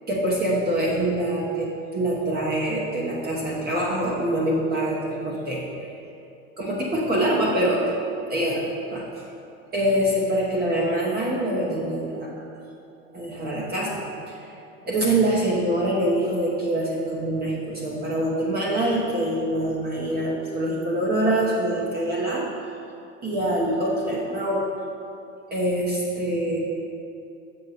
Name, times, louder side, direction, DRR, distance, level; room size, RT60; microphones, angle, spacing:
voice 1, 0.1-5.6 6.6-7.9 8.3-9.2 9.7-12.3 13.1-14.0 14.3-14.4 14.9-22.4 23.2-24.7 25.5-26.6, right 1 dB, 25° right, -4 dB, 1.0 m, -24 dB
6.7 x 6.3 x 4.2 m, 2.7 s
supercardioid pair, 125°, 38 cm